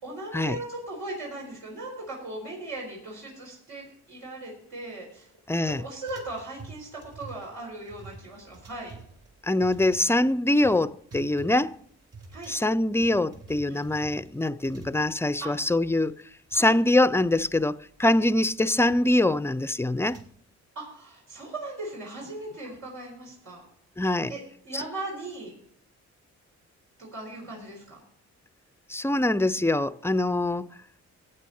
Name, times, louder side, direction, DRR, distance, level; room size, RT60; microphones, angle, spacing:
voice 1, 0.0-5.3 5.6-9.0 12.3-12.5 13.7-13.8 15.4-15.5 16.5-16.7 20.7-23.6 24.3-25.5 27.0-28.0, right 2 dB, 85° right, 4.4 m, -38 dB
voice 2, 5.5-5.8 9.4-11.8 12.5-16.1 16.5-20.2 24.0-24.3 24.7-24.8 28.9-30.7, left 1 dB, 10° left, 0.3 m, -24 dB
sound 1, 5.7-15.5 15.7-15.8 16.0-16.6 17.0-20.3, right 4 dB, 55° right, 3.5 m, -48 dB
15.5 x 8.9 x 4.2 m
cardioid pair, 100°, 30 cm